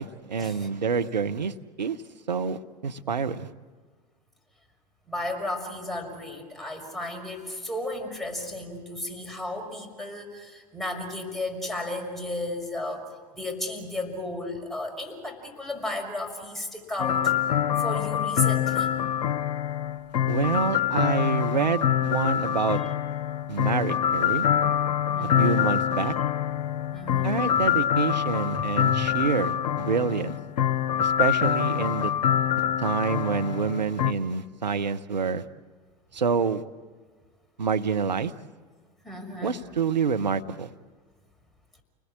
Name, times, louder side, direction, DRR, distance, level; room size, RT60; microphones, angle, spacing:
voice 1, 0.0-2.0 2.3-2.6 2.8-3.5 20.3-22.8 23.5-24.5 25.2-26.1 27.2-30.4 31.0-32.1 32.8-35.4 36.1-36.6 37.6-38.3 39.4-40.7, right 5 dB, 90° right, 8 dB, 1.0 m, -27 dB
voice 2, 5.1-13.1 13.4-17.3 17.8-18.9 25.1-25.6 26.9-27.3 28.5-28.6 28.9-29.1 29.8-29.9 39.0-39.6, left 1 dB, ahead, 1 dB, 6.0 m, -34 dB
sound 1, 17.0-34.1, left 10 dB, 70° left, 0.9 m, -25 dB
29.5 x 20.5 x 8.6 m, 1.5 s
hypercardioid pair, 85°, 21 cm